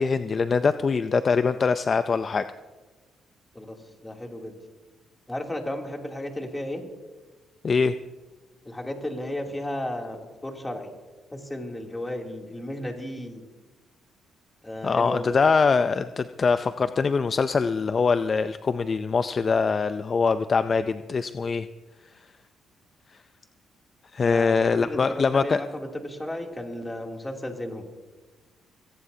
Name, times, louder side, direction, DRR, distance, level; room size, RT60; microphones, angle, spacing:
voice 1, 0.0-2.5 7.6-7.9 14.8-21.7 24.1-25.6, left 5 dB, 40° left, 11 dB, 0.5 m, -23 dB
voice 2, 4.0-4.6 5.3-6.8 8.6-10.9 11.3-13.4 14.6-15.4 24.2-27.8, left 1 dB, 15° left, 1 dB, 2.9 m, -34 dB
23.0 x 17.5 x 2.8 m, 1.3 s
cardioid pair, 90°, 0 cm